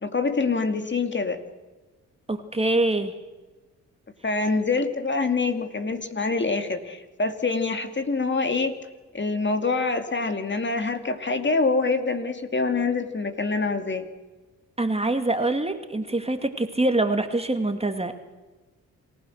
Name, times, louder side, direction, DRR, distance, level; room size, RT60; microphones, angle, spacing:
voice 1, 0.0-1.4 4.2-8.8 9.1-14.1, left 3 dB, 35° left, 7 dB, 2.4 m, -25 dB
voice 2, 2.3-3.1 14.8-18.2, right 2 dB, 20° right, 7 dB, 2.2 m, -24 dB
27.5 x 15.5 x 6.5 m, 1.2 s
cardioid pair, 60°, 32 cm